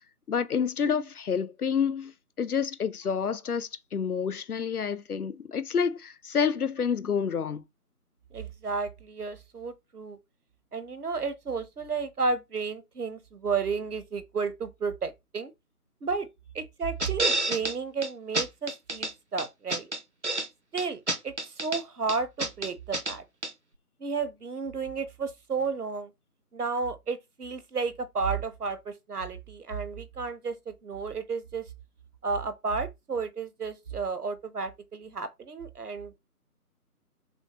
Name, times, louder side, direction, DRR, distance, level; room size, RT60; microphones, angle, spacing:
voice 1, 0.3-7.6, left 6 dB, 70° left, 0.5 m, -29 dB
voice 2, 8.3-10.2 10.7-15.5 16.0-16.3 16.5-19.9 20.7-23.2 24.0-26.1 26.5-31.7 32.2-36.1, right 4 dB, 75° right, 0.8 m, -32 dB
sound 1, 17.0-17.7 18.0-18.1 18.3-19.1 19.4-20.5 20.8-21.8 22.1-23.1 23.4-23.5, right 2 dB, 50° right, 0.5 m, -29 dB
6.2 x 2.1 x 2.8 m
figure-of-eight pair, 165°, 47 cm